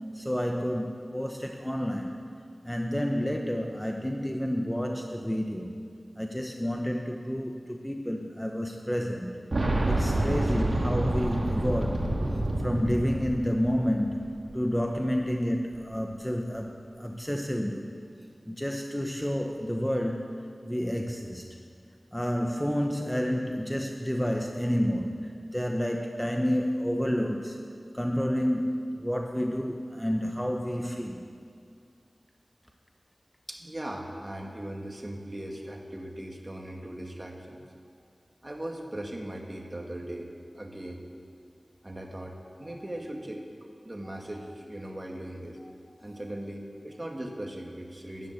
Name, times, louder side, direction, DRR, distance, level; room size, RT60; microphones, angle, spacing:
voice 1, 0.1-2.2 2.6-5.8 6.2-12.1 12.6-18.0 18.5-21.5 22.1-27.6 27.9-31.2 44.0-44.2, equal, 5° left, 3 dB, 1.0 m, -30 dB
Boom, 9.5-14.3 14.5-14.6 15.7-15.8, right 1 dB, 60° right, 2.4 m, -28 dB
voice 2, 33.5-37.6 38.4-40.3 40.5-41.0 41.8-43.5 43.8-45.6 46.0-48.3, right 1 dB, 30° right, 1 dB, 2.2 m, -39 dB
13.5 x 11.0 x 9.3 m, 2.3 s
wide cardioid pair, 70°, 0 cm